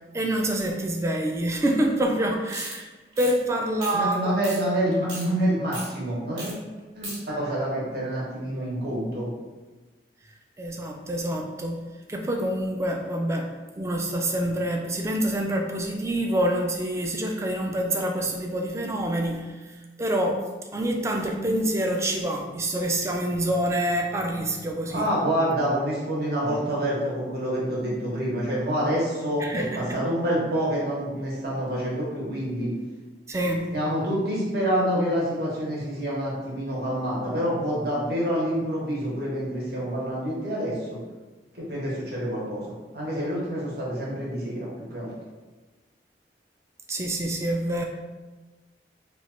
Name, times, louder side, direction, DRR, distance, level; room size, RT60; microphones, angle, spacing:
voice 1, 0.1-2.9 3.2-4.4 10.6-20.4 20.7-25.1 29.4-30.0 33.3-33.7 46.9-47.8, right 1 dB, 15° right, 2 dB, 0.3 m, -27 dB
sound 1, 2.5-2.7 3.1-3.3 3.8-4.1 4.4-4.6 4.9-5.2 5.7-5.9 6.4-6.5 6.8-7.2, right 2 dB, 80° right, 1.2 m, -36 dB
voice 2, 3.9-6.5 6.9-9.3 24.9-32.7 33.7-41.0 41.5-42.6 42.9-45.1, equal, 60° right, -5 dB, 1.0 m, -27 dB
3.1 x 2.3 x 4.2 m, 1.2 s
head